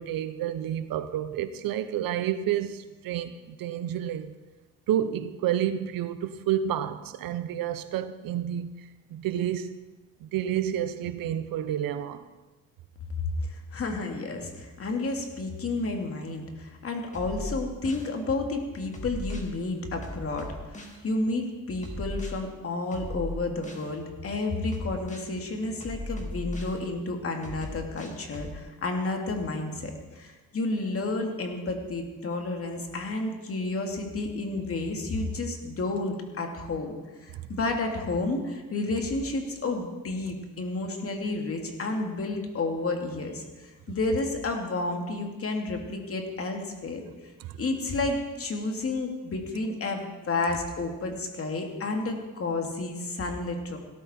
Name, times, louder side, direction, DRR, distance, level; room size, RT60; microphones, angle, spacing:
voice 1, 0.0-4.3 4.9-8.7 9.1-9.8 10.2-12.3 47.4-47.5, right 10 dB, 80° right, 0.9 m, -30 dB
voice 2, 13.5-36.9 37.2-47.0 47.6-53.8, left 2 dB, 40° left, 2.5 m, -31 dB
sound 1, 17.1-18.1 18.9-19.5 20.0-21.0 21.8-22.3 22.9-23.9 24.7-25.3 25.8-26.8 27.4-28.5, left 1 dB, 20° left, 2.3 m, -37 dB
17.0 x 13.5 x 4.4 m
cardioid pair, 110°, 34 cm